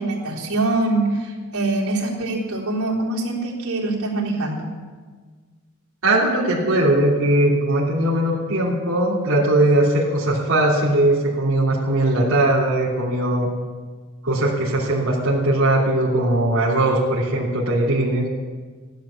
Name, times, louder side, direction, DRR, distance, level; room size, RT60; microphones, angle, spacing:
voice 1, 0.0-4.7, right 2 dB, 80° right, -4 dB, 3.8 m, -24 dB
voice 2, 6.0-13.5 14.2-18.2, right 1 dB, 65° right, -8 dB, 3.0 m, -19 dB
15.5 x 11.5 x 7.1 m, 1.5 s
head